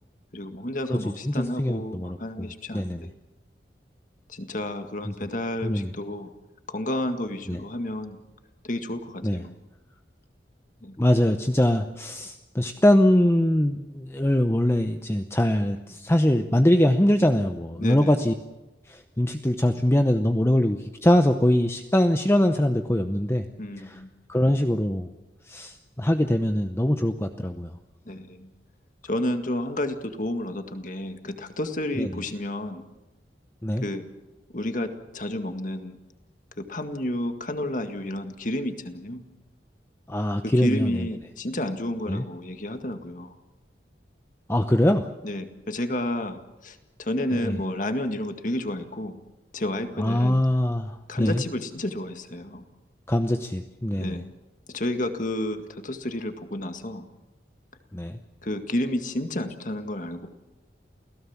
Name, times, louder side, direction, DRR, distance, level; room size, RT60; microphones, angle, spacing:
voice 1, 0.3-3.1 4.3-6.3 6.7-8.2 8.6-9.5 10.8-11.0 17.8-18.1 23.6-24.1 28.1-28.5 29.0-32.9 33.8-34.1 34.5-36.0 36.6-39.2 40.4-43.4 45.2-49.2 49.5-50.4 51.1-52.7 54.0-54.3 54.7-57.1 58.4-60.3, left 1 dB, 45° left, 7 dB, 1.9 m, -31 dB
voice 2, 0.9-2.5 2.7-3.0 5.6-5.9 7.5-7.6 9.2-9.4 11.0-18.3 18.9-23.4 23.8-24.0 24.3-25.1 25.5-27.7 32.0-32.1 33.6-33.8 40.1-41.1 42.1-42.2 44.5-45.1 47.3-47.6 50.0-51.4 53.1-54.2 57.9-58.2, left 1 dB, 15° left, 6 dB, 0.8 m, -23 dB
28.5 x 17.0 x 7.3 m, 1.1 s
head